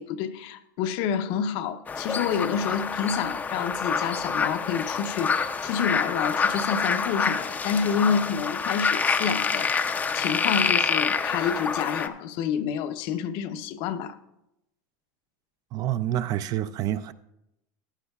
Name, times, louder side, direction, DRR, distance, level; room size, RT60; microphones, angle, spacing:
voice 1, 0.0-14.2, left 7 dB, 55° left, 0.7 m, -28 dB
sound 1, 1.9-12.1, left 5 dB, 15° left, 0.5 m, -27 dB
voice 2, 15.7-17.1, right 12 dB, 40° right, 0.4 m, -28 dB
15.0 x 9.6 x 2.3 m
supercardioid pair, 140°, 10 cm